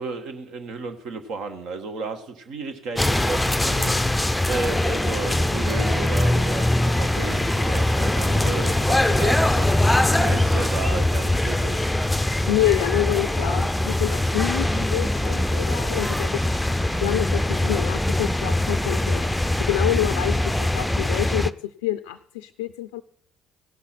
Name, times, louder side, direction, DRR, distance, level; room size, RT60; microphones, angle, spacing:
voice 1, 0.0-11.9, right 3 dB, 70° right, 7 dB, 1.3 m, -33 dB
sound 1, 3.0-21.5, left 1 dB, 10° left, 0.5 m, -22 dB
voice 2, 12.5-16.4 16.7-23.0, left 15 dB, 85° left, 12 dB, 0.4 m, -27 dB
16.5 x 6.1 x 5.9 m, 0.65 s
hypercardioid pair, 60°, 0 cm